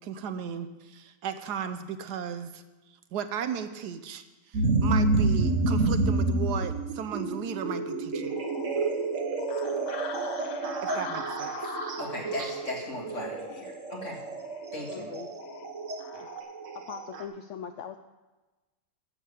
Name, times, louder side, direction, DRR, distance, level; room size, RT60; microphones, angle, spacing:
voice 1, 0.0-2.6 3.1-4.2 4.5-8.3 10.8-11.5, right 7 dB, 75° right, 10 dB, 1.3 m, -35 dB
sound 1, 4.5-17.2, right 3 dB, 50° right, 1.4 m, -29 dB
sound 2, 8.3-16.4, left 7 dB, 85° left, 1.4 m, -44 dB
voice 2, 12.0-14.2 14.7-15.1, left 2 dB, 45° left, -1 dB, 2.6 m, -37 dB
voice 3, 14.9-15.3 16.7-18.0, left 8 dB, 70° left, 8 dB, 0.7 m, -40 dB
12.0 x 7.7 x 6.6 m, 1.2 s
omnidirectional pair, 1.8 m